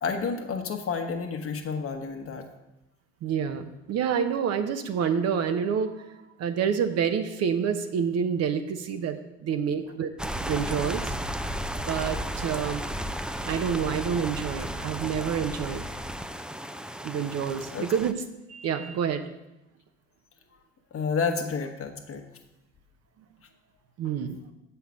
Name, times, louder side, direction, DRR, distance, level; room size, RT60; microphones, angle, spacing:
voice 1, 0.0-2.5 9.5-9.6 9.9-10.0 10.6-10.7 17.7-17.9 20.9-22.2 24.0-24.1, left 5 dB, 45° left, 4 dB, 1.4 m, -30 dB
voice 2, 3.2-10.1 10.5-11.1 11.8-12.8 13.4-15.8 17.0-18.1 18.5-19.2 24.0-24.4, right 7 dB, 50° right, 7 dB, 0.9 m, -28 dB
sound 1, 10.2-18.1, equal, 5° right, 0.6 m, -34 dB
8.0 x 5.7 x 6.4 m, 0.93 s
hypercardioid pair, 55°, 32 cm